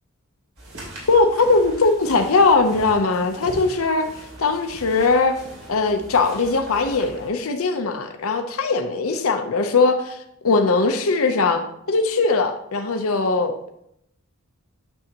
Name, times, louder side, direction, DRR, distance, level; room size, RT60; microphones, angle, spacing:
sound 1, 0.6-7.3, right 1 dB, 70° right, 2.9 m, -40 dB
voice 1, 1.1-4.1 4.4-5.4 5.7-11.6 11.9-13.6, left 3 dB, 65° left, 5 dB, 0.7 m, -20 dB
8.9 x 6.3 x 2.9 m, 0.77 s
head